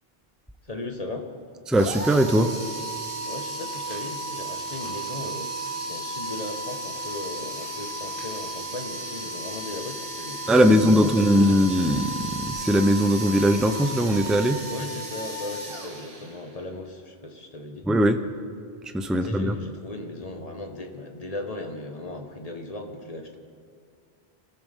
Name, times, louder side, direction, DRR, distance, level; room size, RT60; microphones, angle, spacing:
voice 1, 0.6-1.3 3.2-11.5 14.7-17.9 19.1-23.4, left 2 dB, 35° left, 3 dB, 1.6 m, -37 dB
voice 2, 1.7-2.5 10.5-14.6 17.9-18.2 18.8-19.6, equal, ahead, 7 dB, 0.6 m, -20 dB
sound 1, 1.7-16.6, right 2 dB, 70° right, 2.5 m, -34 dB
sound 2, 3.5-5.8 6.2-6.3 6.6-8.3, equal, 55° left, 5.6 m, -52 dB
24.5 x 14.5 x 3.7 m, 2.3 s
omnidirectional pair, 1.0 m